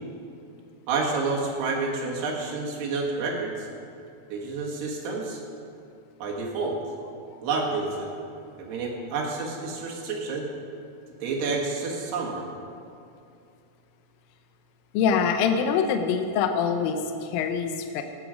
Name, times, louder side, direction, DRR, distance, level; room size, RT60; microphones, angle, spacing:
voice 1, 0.9-3.7 4.3-5.4 6.2-6.8 7.4-8.1 8.6-10.5 11.2-12.4, right 3 dB, 75° right, -2 dB, 3.6 m, -29 dB
voice 2, 14.9-18.0, left 6 dB, 80° left, 6 dB, 2.2 m, -24 dB
17.5 x 8.2 x 5.1 m, 2.5 s
omnidirectional pair, 4.8 m